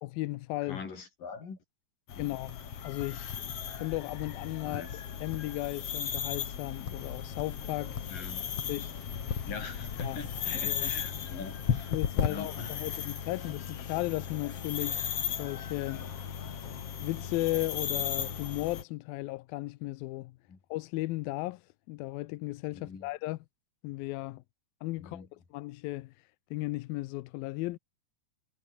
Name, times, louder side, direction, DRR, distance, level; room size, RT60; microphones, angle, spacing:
voice 1, 0.0-0.8 2.2-8.0 8.7-8.9 9.3-9.5 10.0-10.2 10.5-10.9 11.9-16.1 17.0-20.4 20.7-23.4 23.8-24.4 24.8-27.8, left 19 dB, 90° left, 2.5 m, -36 dB
voice 2, 0.6-1.6 2.2-2.3 4.6-4.9 8.1-8.5 9.5-12.0 12.3-12.8 20.5-20.6 22.7-23.1 25.0-25.3, left 5 dB, 65° left, 7.0 m, -42 dB
sound 1, 2.1-18.8, left 8 dB, 45° left, 2.6 m, -36 dB
omnidirectional pair, 4.2 m